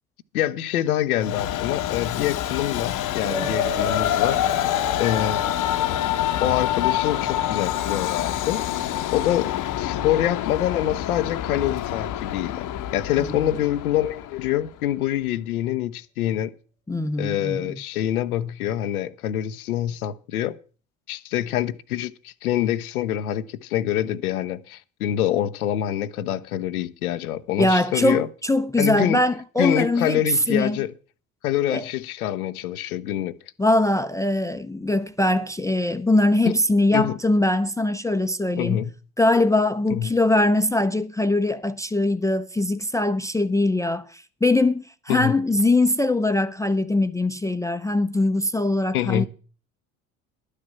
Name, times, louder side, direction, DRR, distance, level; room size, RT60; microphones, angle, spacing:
voice 1, 0.3-4.6 5.0-5.5 6.4-8.6 9.1-12.6 12.9-16.5 17.2-20.6 21.1-28.3 28.8-29.2 29.6-30.9 31.4-33.4 36.9-37.2 38.6-38.9 39.9-40.1 45.1-45.3 48.9-49.3, left 12 dB, 85° left, 0.7 m, -25 dB
Train, 1.2-14.7, left 12 dB, 45° left, 0.8 m, -26 dB
sound 1, 3.2-11.6, right 3 dB, 85° right, 1.6 m, -38 dB
voice 2, 13.2-13.5 16.9-17.7 27.6-30.2 30.5-30.8 31.7-31.8 33.6-38.8 39.2-49.3, left 2 dB, 10° left, 0.5 m, -22 dB
11.5 x 6.6 x 7.3 m
hypercardioid pair, 65°, 42 cm